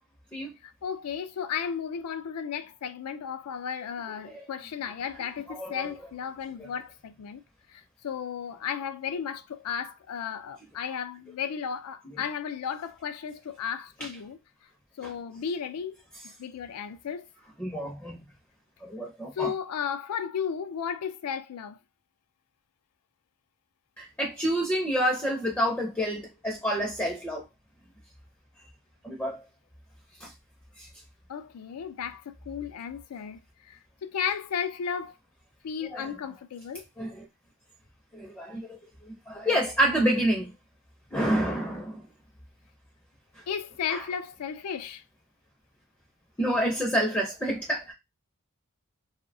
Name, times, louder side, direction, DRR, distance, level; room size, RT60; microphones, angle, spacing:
voice 1, 0.6-7.4 7.7-14.4 15.0-16.0 16.4-17.3 19.4-21.8 31.3-35.2 35.6-36.9 43.5-45.0, left 7 dB, 90° left, 0.4 m, -34 dB
voice 2, 5.5-5.9 14.0-14.1 15.0-15.1 17.6-18.2 18.8-19.5 24.0-27.4 29.0-29.4 30.2-30.3 30.8-30.9 35.9-36.1 37.0-37.3 38.1-40.5 41.1-42.0 43.9-44.0 46.4-47.9, equal, 10° left, 0.4 m, -28 dB
2.6 x 2.1 x 2.6 m
head